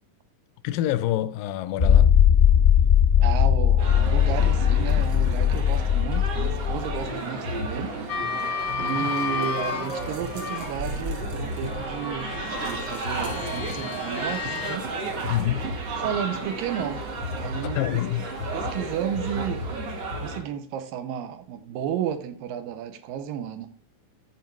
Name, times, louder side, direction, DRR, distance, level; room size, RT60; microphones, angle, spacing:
voice 1, 0.6-2.1 9.0-9.1 15.3-15.7 17.8-18.3, left 13 dB, 90° left, 2.3 m, -26 dB
sound 1, 1.8-7.1, left 9 dB, 35° left, 0.8 m, -19 dB
voice 2, 3.2-7.9 8.4-14.9 16.0-18.0 18.5-19.7 20.2-23.7, right 9 dB, 85° right, 2.6 m, -33 dB
sound 2, 3.8-20.4, right 2 dB, 50° right, 2.4 m, -32 dB
sound 3, 8.1-10.8 11.5-14.8, left 5 dB, 55° left, 1.1 m, -32 dB
13.5 x 4.8 x 4.6 m
omnidirectional pair, 3.9 m